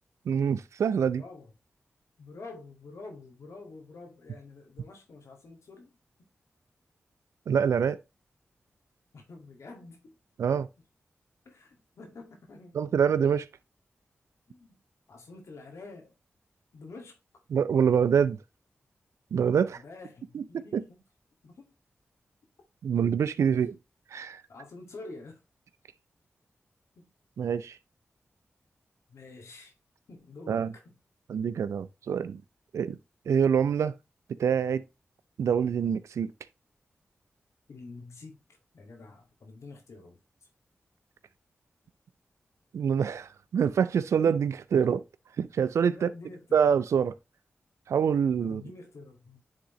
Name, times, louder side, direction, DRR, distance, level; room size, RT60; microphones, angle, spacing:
voice 1, 0.3-1.2 7.5-8.0 10.4-10.6 12.7-13.5 17.5-18.4 19.3-19.8 20.3-20.8 22.8-23.7 24.1-24.4 27.4-27.8 30.5-30.7 31.3-32.4 32.7-33.0 33.3-33.9 34.4-34.8 35.4-36.3 42.7-45.0 45.4-46.1 46.5-47.1 47.9-48.6, right 7 dB, 85° right, 0.5 m, -25 dB
voice 2, 1.1-1.5 2.2-5.9 9.1-10.2 10.5-10.7 11.5-12.8 14.5-14.8 15.1-16.2 16.7-17.2 19.6-21.0 21.4-21.7 23.5-23.6 24.5-25.4 27.0-27.1 29.1-29.7 30.1-30.9 37.7-38.4 38.7-40.5 45.9-46.7 48.3-49.4, left 3 dB, 80° left, 1.9 m, -48 dB
9.8 x 3.8 x 3.1 m
cardioid pair, 40°, 5 cm